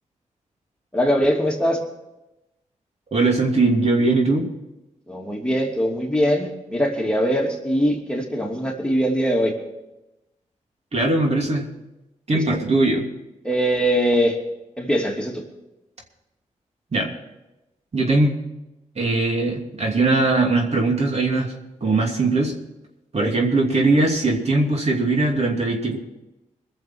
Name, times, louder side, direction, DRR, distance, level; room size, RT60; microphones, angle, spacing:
voice 1, 0.9-1.8 5.1-9.5 12.3-12.6 13.4-14.4 14.8-15.4 23.2-23.3, equal, 5° left, -1 dB, 2.8 m, -22 dB
voice 2, 3.1-4.5 10.9-11.6 12.3-13.0 16.9-17.1 17.9-18.3 19.0-21.5 21.8-22.5 23.1-26.0, right 2 dB, 55° right, 0 dB, 2.8 m, -20 dB
21.0 x 7.1 x 6.2 m, 0.95 s
cardioid pair, 60°, 13 cm